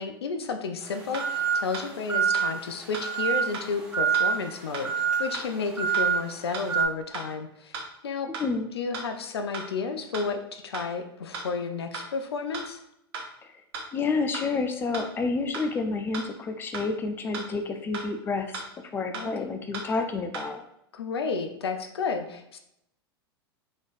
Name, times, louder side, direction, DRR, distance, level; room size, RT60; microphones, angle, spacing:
voice 1, 0.0-7.8 8.0-8.3 8.7-12.8 19.1-19.3 20.9-22.6, left 4 dB, 75° left, 7 dB, 0.4 m, -32 dB
sound 1, 0.8-6.8, right 7 dB, 5° right, 0.9 m, -27 dB
sound 2, 1.1-1.3 1.7-1.9 2.3-2.5 2.9-3.1 3.5-3.7 4.1-4.3 4.7-4.9 5.3-5.5 5.9-6.1 6.5-6.6 7.1-7.3 7.7-7.9 8.3-8.5 8.9-9.0 9.5-9.7 10.1-10.3 10.7-10.9 11.3-11.5 11.9-12.1 12.5-12.7 13.1-13.3 13.7-13.9 14.3-14.5 14.9-15.1 15.5-15.7 16.1-16.3 16.7-16.9 17.3-17.5 17.9-18.0 18.5-18.7 19.1-19.3 19.7-19.9 20.3-20.5, right 4 dB, 65° right, 1.0 m, -35 dB
voice 2, 13.9-18.6 18.9-20.6, left 4 dB, 15° left, 6 dB, 0.4 m, -29 dB
4.0 x 3.1 x 2.4 m, 0.77 s
figure-of-eight pair, 95°, 13 cm